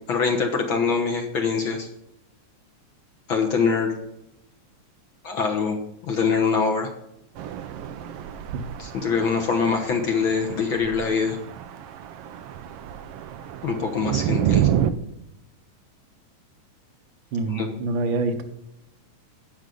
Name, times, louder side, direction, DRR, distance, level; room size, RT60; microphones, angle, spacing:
voice 1, 0.1-1.9 3.3-3.9 5.2-5.8 6.0-6.9 8.8-11.4 13.6-14.7 17.5-17.8, left 5 dB, 60° left, 2 dB, 1.5 m, -24 dB
sound 1, 7.4-14.9, right 10 dB, 80° right, 1.3 m, -29 dB
voice 2, 17.3-18.4, right 3 dB, 60° right, 7 dB, 1.3 m, -26 dB
17.0 x 6.4 x 3.9 m, 0.85 s
omnidirectional pair, 3.4 m